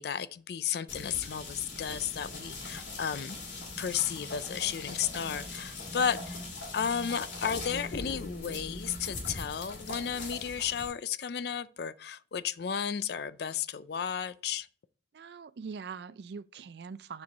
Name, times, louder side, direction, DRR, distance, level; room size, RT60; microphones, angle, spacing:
voice 1, 0.0-3.4 3.8-6.4 6.7-14.7, left 8 dB, 55° left, 0.4 m, -33 dB
sound 1, 0.9-10.9, left 2 dB, 80° left, 2.6 m, -41 dB
voice 2, 15.1-17.2, right 5 dB, 60° right, 0.4 m, -42 dB
7.4 x 4.6 x 4.0 m
head